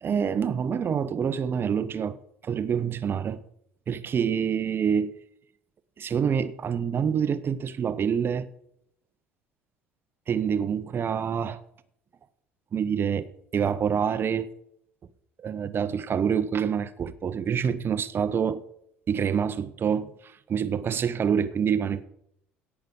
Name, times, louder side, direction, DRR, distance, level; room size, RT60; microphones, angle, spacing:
voice 1, 0.0-2.2 2.4-3.4 3.9-5.1 6.0-8.5 10.3-11.6 12.7-13.3 13.5-14.5 15.4-18.6 19.1-22.0, right 7 dB, 35° right, 1.0 m, -26 dB
17.0 x 6.2 x 5.4 m
figure-of-eight pair, 60°, 6 cm